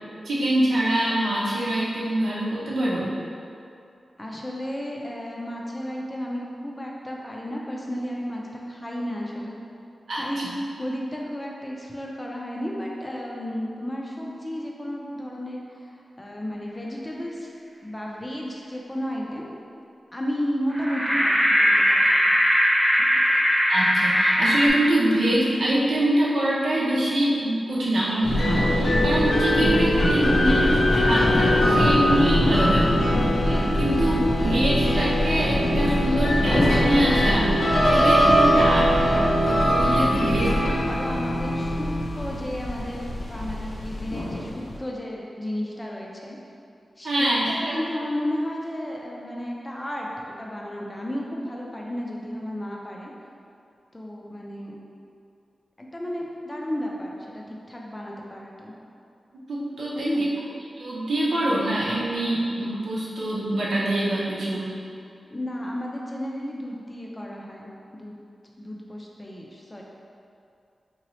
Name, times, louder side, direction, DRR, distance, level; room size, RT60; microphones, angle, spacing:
voice 1, 0.2-3.1 10.1-10.2 23.7-32.9 33.3-38.9 39.1-40.5 47.0-47.8 59.5-60.2 60.8-64.7, right 1 dB, 85° right, -7 dB, 0.7 m, -24 dB
voice 2, 4.2-9.6 10.2-10.5 10.8-15.8 16.2-17.5 17.8-19.4 20.1-22.3 23.1-23.2 32.7-32.8 40.2-41.9 42.2-46.4 47.0-53.1 53.9-54.8 55.8-58.8 59.9-60.2 65.2-68.2 68.6-69.8, equal, 15° left, -2 dB, 0.5 m, -33 dB
sound 1, 20.7-24.7, equal, 5° right, 0.8 m, -20 dB
sound 2, 28.2-44.8, equal, 70° left, 0.5 m, -21 dB
3.8 x 2.9 x 3.0 m, 2.5 s
wide cardioid pair, 130°, 0 cm